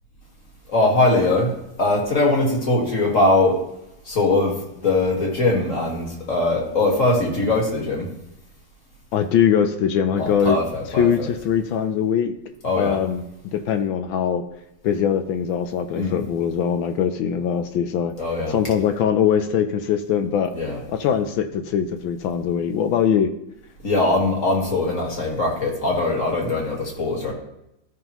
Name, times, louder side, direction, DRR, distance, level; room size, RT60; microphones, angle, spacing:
voice 1, 0.7-3.6 4.1-4.6 4.8-8.1 10.2-11.3 12.6-13.0 15.9-16.2 18.2-18.6 20.5-20.8 23.8-27.3, left 2 dB, 40° left, -1 dB, 2.0 m, -21 dB
voice 2, 9.1-10.6 11.0-12.3 12.8-13.2 13.5-14.4 14.8-18.1 18.5-20.5 21.0-23.3, left 8 dB, 75° left, 7 dB, 1.3 m, -21 dB
14.0 x 5.4 x 3.0 m, 0.84 s
omnidirectional pair, 2.4 m